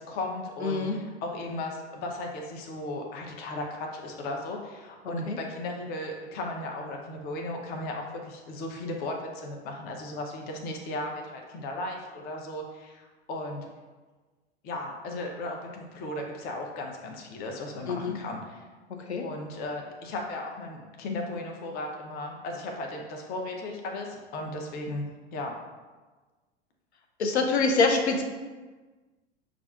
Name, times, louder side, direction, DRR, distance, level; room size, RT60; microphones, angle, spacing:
voice 1, 0.0-13.6 14.6-18.6 19.2-25.6, left 2 dB, 30° left, 2 dB, 0.5 m, -36 dB
voice 2, 0.6-1.0 5.3-5.4 17.9-18.2 19.1-19.2 27.2-28.2, left 3 dB, 75° left, 4 dB, 0.6 m, -25 dB
5.7 x 2.4 x 2.4 m, 1.3 s
figure-of-eight pair, 90°, 33 cm